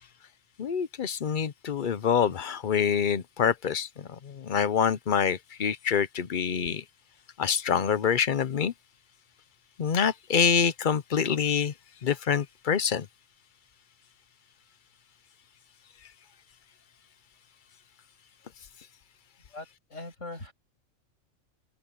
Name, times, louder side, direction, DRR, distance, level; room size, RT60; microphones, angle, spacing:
voice 1, 0.6-6.8 7.4-8.7 9.8-11.7 12.0-13.1, left 7 dB, 45° left, 0.8 m, -26 dB
voice 2, 19.5-20.5, left 2 dB, 70° left, 7.4 m, -41 dB
omnidirectional pair, 1.3 m